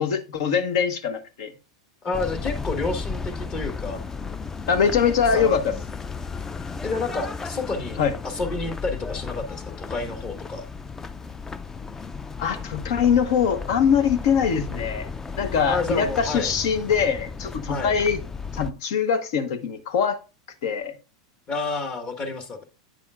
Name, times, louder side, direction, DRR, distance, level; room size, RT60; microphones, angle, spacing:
voice 1, 0.0-1.5 4.7-5.7 8.0-8.1 12.4-15.1 15.4-18.2 18.5-20.2 20.6-20.9, left 7 dB, 65° left, 1.0 m, -23 dB
voice 2, 2.0-4.0 5.3-5.6 6.8-10.6 15.7-16.5 17.7-17.9 21.5-22.6, left 3 dB, 35° left, 1.6 m, -30 dB
sound 1, 2.1-18.7, left 5 dB, 15° left, 0.4 m, -34 dB
9.0 x 6.9 x 2.4 m
hypercardioid pair, 105°, 3 cm